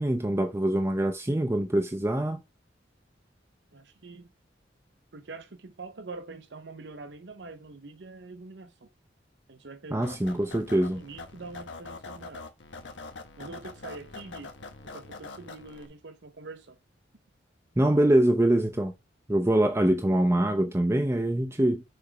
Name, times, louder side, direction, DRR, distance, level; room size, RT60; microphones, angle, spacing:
voice 1, 0.0-2.4 9.9-11.0 17.8-18.9 19.3-21.8, right 1 dB, 15° right, 0.6 m, -24 dB
voice 2, 3.7-4.3 5.1-8.9 9.5-10.1 10.9-12.4 13.4-14.5 14.8-16.8, right 3 dB, 70° right, 0.7 m, -44 dB
sound 1, 10.0-15.9, left 3 dB, 85° left, 1.3 m, -44 dB
6.6 x 3.5 x 5.1 m
head